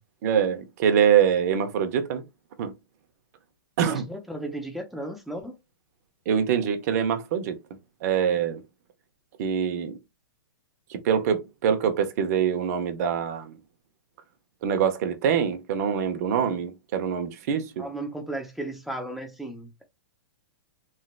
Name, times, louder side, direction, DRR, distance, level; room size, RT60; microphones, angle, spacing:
voice 1, 0.2-2.2 2.6-2.7 3.8-4.1 6.3-7.6 8.0-8.6 9.4-10.0 10.9-13.5 14.6-17.9, right 8 dB, 50° right, 0.8 m, -24 dB
voice 2, 3.9-5.6 17.8-19.8, right 1 dB, ahead, 0.5 m, -35 dB
3.2 x 2.7 x 2.4 m
hypercardioid pair, 150°, 11 cm